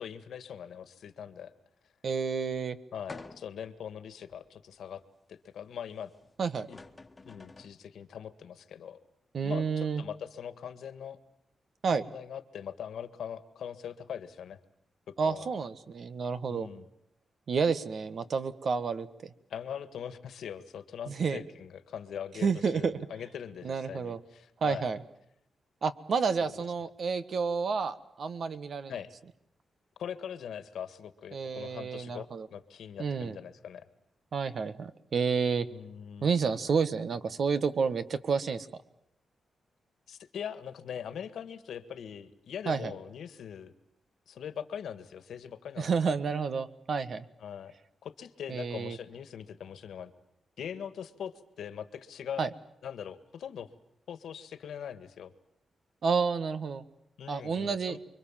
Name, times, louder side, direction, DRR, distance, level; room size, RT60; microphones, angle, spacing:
voice 1, 0.0-1.5 2.9-5.0 5.3-6.1 6.7-6.8 7.2-9.0 9.4-11.2 11.9-14.6 15.1-15.5 16.5-16.9 19.5-24.9 26.4-26.6 28.9-29.1 30.0-33.9 35.7-36.3 40.1-43.7 44.3-46.2 47.4-47.7 48.0-50.1 50.6-52.5 52.8-53.7 54.1-55.3 57.2-58.0, left 8 dB, 85° left, 12 dB, 1.8 m, -41 dB
voice 2, 2.0-2.8 6.4-6.7 9.3-10.0 11.8-12.0 15.2-16.7 17.5-19.1 21.1-21.4 22.4-23.0 23.6-24.2 24.6-25.0 25.8-28.9 31.3-32.5 33.0-33.4 34.3-35.7 36.2-38.7 42.7-42.9 45.8-47.2 48.5-49.0 52.4-52.5 56.0-56.8 57.3-58.0, right 5 dB, 55° right, 12 dB, 1.5 m, -30 dB
sound 1, 3.1-3.7 4.3-4.4 6.2-6.3 6.6-7.8, left 3 dB, 25° left, 1.6 m, -48 dB
29.5 x 23.5 x 7.5 m, 0.78 s
wide cardioid pair, 115°, 0 cm